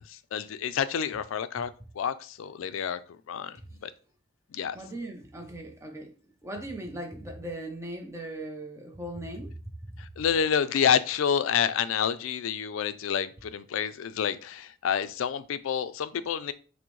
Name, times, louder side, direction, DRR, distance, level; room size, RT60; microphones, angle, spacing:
voice 1, 0.3-1.7 2.0-3.0 3.3-3.6 3.8-3.9 4.5-4.8 10.2-16.5, left 7 dB, 85° left, 0.3 m, -28 dB
voice 2, 4.7-6.1 6.4-10.1, right 1 dB, 15° right, 0.6 m, -39 dB
5.8 x 2.1 x 3.1 m
head